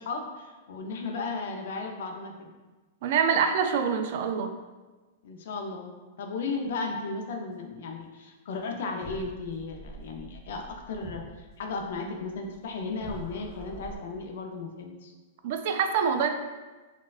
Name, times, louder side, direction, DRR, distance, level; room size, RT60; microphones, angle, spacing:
voice 1, 0.0-2.5 5.2-15.1, left 3 dB, 70° left, 3 dB, 0.5 m, -35 dB
voice 2, 3.0-4.5 15.4-16.3, right 6 dB, 55° right, 6 dB, 0.3 m, -25 dB
sound 1, 9.0-14.0, right 1 dB, 30° left, 0.7 m, -46 dB
4.2 x 2.3 x 2.4 m, 1.2 s
supercardioid pair, 155°, 0 cm